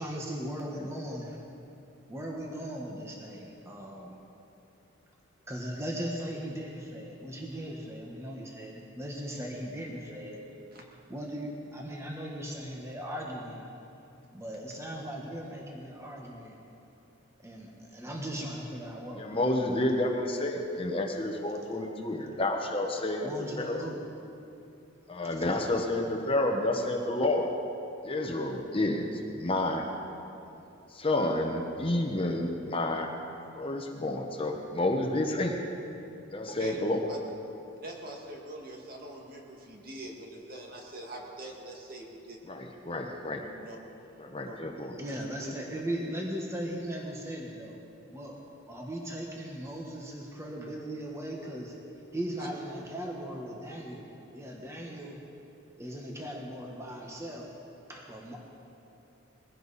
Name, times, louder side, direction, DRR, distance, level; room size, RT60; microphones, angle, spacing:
voice 1, 0.0-1.4 2.1-4.2 5.5-10.4 11.1-13.6 14.3-16.6 17.4-19.3 23.2-24.0 25.4-25.5 45.0-47.8 48.1-48.4 48.7-51.8 52.1-55.2 55.8-57.6 57.9-58.4, equal, 15° right, -1 dB, 1.3 m, -38 dB
voice 2, 0.7-1.2 19.2-23.9 25.1-27.5 28.0-29.9 30.9-33.1 33.6-35.6 36.3-37.1 42.5-43.4 44.2-44.9, left 1 dB, 25° left, 2 dB, 1.1 m, -30 dB
voice 3, 36.4-36.8 37.1-37.2 37.8-42.4 43.6-43.8 44.5-44.6 45.1-45.5 52.4-52.5, right 1 dB, 45° right, -1 dB, 2.2 m, -43 dB
21.5 x 16.0 x 4.2 m, 2.8 s
head